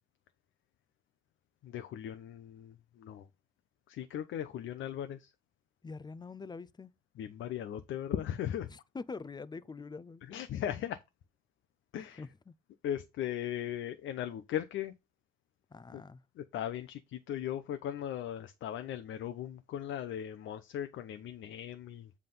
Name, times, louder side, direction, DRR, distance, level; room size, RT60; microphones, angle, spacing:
voice 1, 1.6-3.3 3.9-5.3 7.2-8.7 10.3-11.0 11.9-12.2 12.8-14.9 15.9-16.0 16.4-22.1, left 10 dB, 80° left, 0.8 m, -38 dB
voice 2, 5.8-6.9 8.7-10.4 12.2-12.5 15.7-16.2, left 4 dB, 20° left, 0.6 m, -45 dB
7.7 x 3.6 x 5.6 m
cardioid pair, 90°, 20 cm